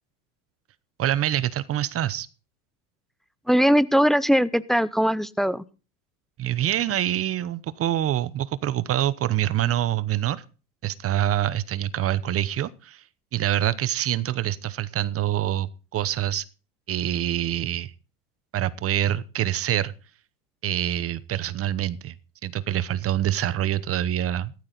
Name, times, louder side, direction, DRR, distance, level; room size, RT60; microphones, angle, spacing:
voice 1, 1.0-2.3 6.4-10.4 10.8-13.0 13.3-16.5 16.9-17.9 18.5-19.9 20.6-22.1 22.4-24.5, right 12 dB, 30° right, 17 dB, 0.9 m, -25 dB
voice 2, 3.5-5.6, equal, ahead, 16 dB, 0.6 m, -20 dB
15.0 x 12.5 x 3.9 m, 0.35 s
supercardioid pair, 115°, 43 cm